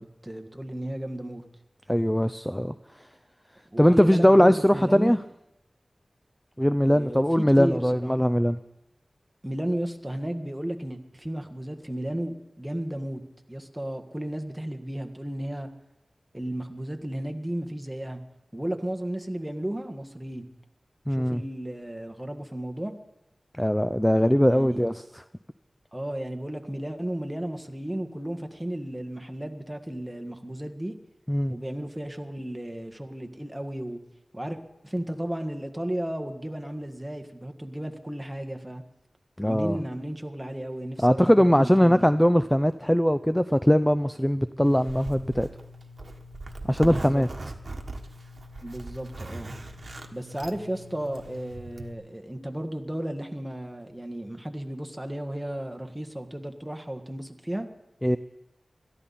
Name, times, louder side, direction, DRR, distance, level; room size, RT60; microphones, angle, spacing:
voice 1, 0.0-1.4 3.7-5.1 6.8-8.1 9.4-13.2 13.5-15.7 16.3-18.2 18.5-20.5 21.1-22.9 24.5-24.8 25.9-30.9 31.5-34.0 34.3-34.6 34.8-38.8 39.4-42.1 46.8-47.3 48.6-49.5 50.1-57.7, right 1 dB, 10° right, 5 dB, 1.7 m, -34 dB
voice 2, 1.9-2.7 3.8-5.2 6.6-8.6 21.1-21.4 23.6-25.2 31.3-31.5 39.4-39.8 41.0-45.5 46.7-47.3 58.0-58.2, equal, 5° left, 12 dB, 0.5 m, -21 dB
Zipper (clothing), 44.6-51.9, right 1 dB, 55° right, 1.3 m, -40 dB
21.0 x 13.5 x 4.2 m, 0.90 s
cardioid pair, 45°, 0 cm